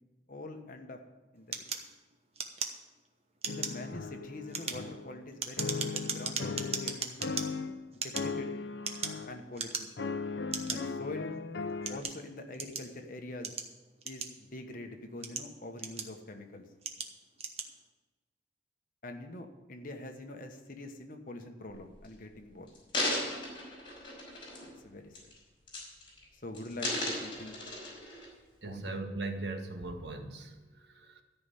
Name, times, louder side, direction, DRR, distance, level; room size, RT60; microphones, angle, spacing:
voice 1, 0.3-1.0 1.3-1.7 3.5-7.3 7.9-8.5 9.2-9.9 10.7-11.3 11.9-13.5 14.0-16.6 19.0-22.7 24.8-25.2 26.4-27.6 28.6-28.8, left 2 dB, 50° left, 4 dB, 1.3 m, -44 dB
sound 1, 1.5-3.1 3.4-3.8 4.4-7.5 7.9-9.2 9.5-10.1 10.5-10.8 11.4-12.9 13.4-14.6 15.1-16.3 16.8-17.1 17.4-17.7, right 6 dB, 35° right, 1.1 m, -37 dB
sound 2, 3.5-5.2 5.6-7.8 8.1-9.4 10.0-12.0, left 4 dB, 70° left, 0.6 m, -37 dB
sound 3, 21.7-22.1 22.7-24.8 25.1-25.4 25.7-26.2 26.5-28.3 28.8-28.9, left 1 dB, 30° left, 4.5 m, -36 dB
voice 2, 28.6-31.2, right 2 dB, 70° right, 5 dB, 1.4 m, -39 dB
13.5 x 5.7 x 9.1 m, 1.2 s
head